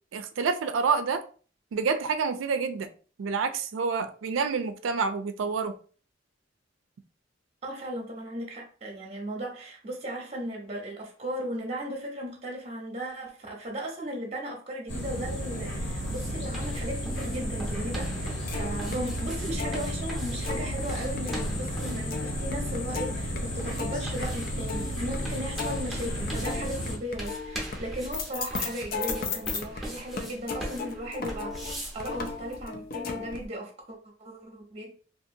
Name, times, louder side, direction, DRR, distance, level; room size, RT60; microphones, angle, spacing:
voice 1, 0.1-1.2 1.7-2.9 3.2-5.7, right 5 dB, 90° right, 0.4 m, -28 dB
voice 2, 7.6-31.6 31.9-34.9, right 1 dB, 35° right, 0.7 m, -36 dB
sound 1, 14.9-27.0, equal, 85° left, 1.4 m, -33 dB
sound 2, 15.0-32.6, right 1 dB, ahead, 0.7 m, -42 dB
sound 3, 18.2-20.9 21.2-29.8 30.2-33.5, left 4 dB, 50° left, 0.4 m, -36 dB
2.7 x 2.5 x 2.6 m
head